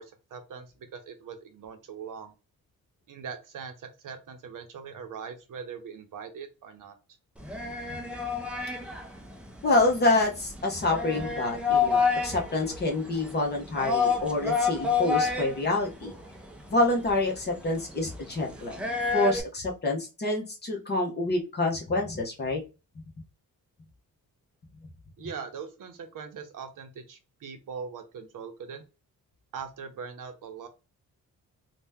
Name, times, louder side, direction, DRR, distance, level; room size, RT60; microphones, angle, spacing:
voice 1, 0.0-2.3 3.1-7.0 25.2-28.8 29.5-30.7, right 6 dB, 65° right, 7 dB, 0.7 m, -41 dB
sound 1, 7.4-19.4, left 5 dB, 5° right, 0.4 m, -30 dB
voice 2, 9.6-16.1 16.7-18.8 19.1-22.6, left 2 dB, 30° left, 0 dB, 0.8 m, -27 dB
2.7 x 2.2 x 3.4 m, 0.29 s
wide cardioid pair, 175°, 35 cm